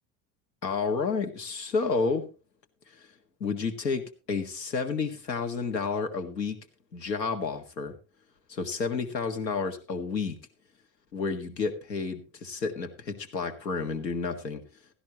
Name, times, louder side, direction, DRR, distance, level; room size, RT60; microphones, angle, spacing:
voice 1, 0.6-2.3 2.9-3.1 3.4-6.6 6.9-7.9 8.5-10.4 11.1-14.6, left 4 dB, 85° left, 7 dB, 1.8 m, -30 dB
16.5 x 13.0 x 2.9 m, 0.32 s
figure-of-eight pair, 65°, 49 cm